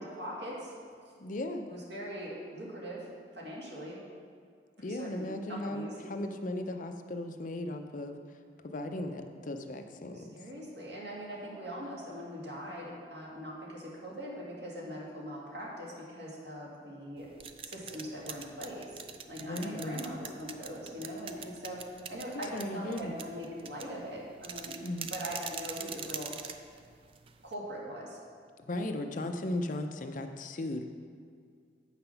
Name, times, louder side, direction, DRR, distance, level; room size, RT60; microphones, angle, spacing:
voice 1, 0.1-0.7 1.7-3.1 3.3-4.0 4.8-6.0 10.1-17.3 17.6-19.0 19.3-24.8 25.0-26.4 27.4-28.2, equal, 70° right, -4 dB, 2.0 m, -41 dB
voice 2, 1.2-1.7 4.8-8.1 8.6-10.3 19.4-20.0 22.5-23.2 24.8-25.1 28.7-30.9, left 1 dB, 45° left, 6 dB, 0.5 m, -36 dB
sound 1, 17.2-27.5, right 7 dB, 30° right, 0.4 m, -44 dB
7.7 x 5.8 x 5.7 m, 2.1 s
head